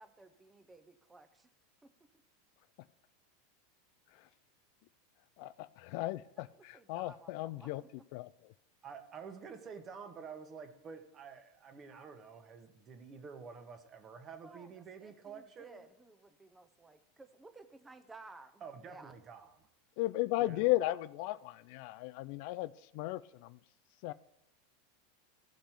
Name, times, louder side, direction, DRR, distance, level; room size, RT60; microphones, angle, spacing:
voice 1, 0.0-1.5 1.8-1.9 6.7-7.9 14.4-14.7 15.0-19.1, right 3 dB, 10° right, 10 dB, 0.7 m, -56 dB
voice 2, 5.4-7.8 8.1-8.5 20.0-23.6 24.0-24.1, left 18 dB, 60° left, 16 dB, 0.3 m, -35 dB
voice 3, 8.8-15.8 18.6-19.7 20.4-20.6, right 6 dB, 30° right, 7 dB, 1.2 m, -49 dB
15.5 x 5.2 x 4.5 m, 0.83 s
supercardioid pair, 135°, 0 cm